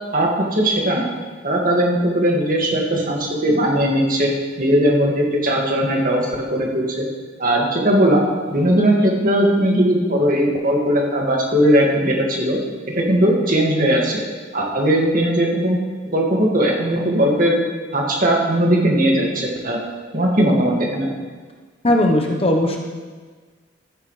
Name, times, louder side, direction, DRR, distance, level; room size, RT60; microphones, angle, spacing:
voice 1, 0.1-1.1 1.4-7.1 7.4-12.6 12.9-14.2 14.5-15.8 16.1-17.6 17.9-19.8 20.1-21.1, right 1 dB, 45° right, -1 dB, 2.0 m, -18 dB
voice 2, 21.8-22.8, left 1 dB, 30° left, 2 dB, 0.9 m, -17 dB
13.5 x 9.8 x 3.3 m, 1.5 s
head